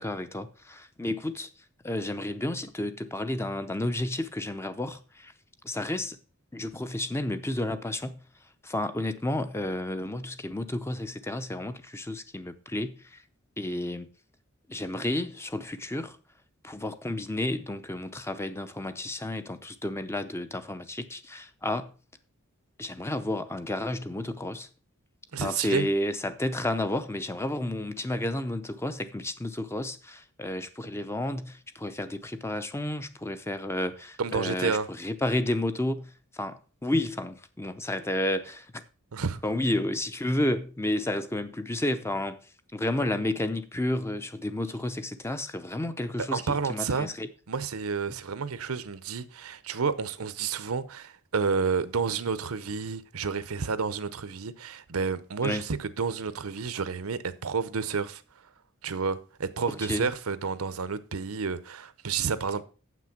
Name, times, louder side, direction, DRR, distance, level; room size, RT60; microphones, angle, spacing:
voice 1, 0.0-1.5 1.8-5.3 5.6-6.2 6.5-8.2 8.6-13.2 13.6-14.1 14.7-16.2 16.6-21.9 22.8-24.7 25.3-38.8 39.4-42.4 42.7-47.3 55.4-55.6 59.7-60.1, left 1 dB, 10° left, 0.6 m, -31 dB
voice 2, 25.3-25.9 34.2-34.9 39.1-39.4 46.3-47.1 47.5-58.2 58.8-62.6, right 5 dB, 75° right, 0.7 m, -30 dB
7.7 x 6.1 x 5.8 m
head